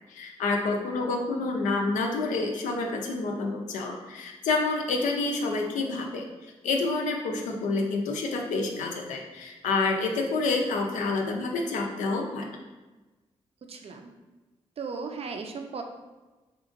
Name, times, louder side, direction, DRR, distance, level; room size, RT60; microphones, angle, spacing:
voice 1, 0.1-6.3 6.6-12.5, left 3 dB, 85° left, 2 dB, 0.4 m, -28 dB
voice 2, 13.7-14.1 14.8-15.8, right 4 dB, 55° right, 4 dB, 0.4 m, -36 dB
2.8 x 2.5 x 2.5 m, 1.2 s
supercardioid pair, 45°, 12 cm